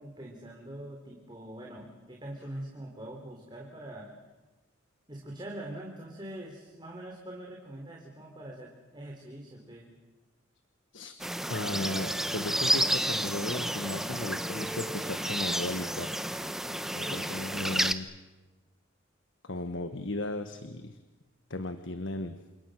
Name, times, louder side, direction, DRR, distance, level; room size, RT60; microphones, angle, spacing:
voice 1, 0.0-4.1 5.1-9.9 17.0-17.3, right 1 dB, 20° right, -1 dB, 3.6 m, -43 dB
sound 1, 11.2-17.9, right 1 dB, ahead, 1.0 m, -31 dB
voice 2, 11.5-16.1 16.9-18.1 19.4-21.0 21.5-22.4, left 2 dB, 65° left, 9 dB, 1.4 m, -36 dB
29.5 x 27.5 x 6.5 m, 1.2 s
head